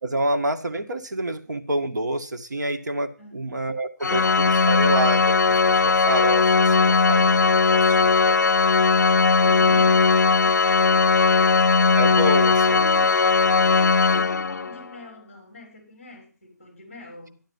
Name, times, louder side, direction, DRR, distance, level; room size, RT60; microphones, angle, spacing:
voice 1, 0.0-8.4 9.4-9.9 12.0-13.1, right 1 dB, 85° right, 6 dB, 2.2 m, -28 dB
voice 2, 3.2-3.5 12.6-17.4, equal, 10° left, 2 dB, 6.6 m, -43 dB
Organ, 4.0-14.8, left 4 dB, 85° left, 0.6 m, -18 dB
13.5 x 11.5 x 5.7 m, 0.39 s
hypercardioid pair, 175°, 9 cm